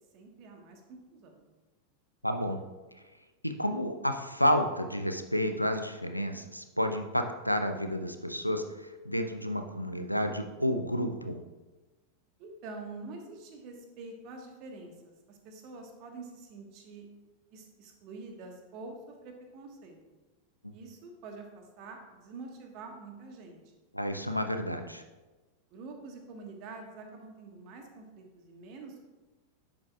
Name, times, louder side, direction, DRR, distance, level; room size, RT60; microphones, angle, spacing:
voice 1, 0.1-1.4 12.4-17.1 17.5-20.0 20.7-23.6 25.7-29.0, right 3 dB, 40° right, 3 dB, 1.4 m, -46 dB
voice 2, 2.2-2.6 3.4-8.6 9.0-11.4 23.9-25.0, equal, 90° left, 7 dB, 0.6 m, -30 dB
10.5 x 7.2 x 2.4 m, 1.2 s
figure-of-eight pair, 90°, 0 cm